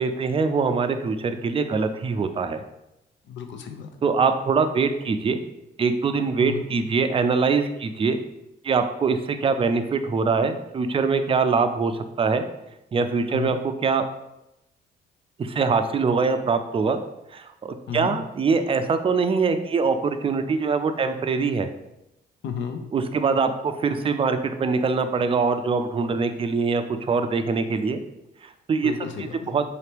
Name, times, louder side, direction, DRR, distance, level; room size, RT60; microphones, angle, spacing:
voice 1, 0.0-2.6 4.0-5.4 5.8-8.2 8.6-12.4 12.9-14.0 15.4-17.0 17.3-21.7 22.9-28.0 28.4-28.9 29.5-29.6, right 4 dB, 30° right, 8 dB, 0.4 m, -23 dB
voice 2, 3.3-3.9 6.4-6.7 13.3-13.6 17.9-18.2 22.4-22.8 28.8-29.6, left 8 dB, 70° left, 6 dB, 0.6 m, -33 dB
4.2 x 2.9 x 3.3 m, 0.88 s
cardioid pair, 90°, 20 cm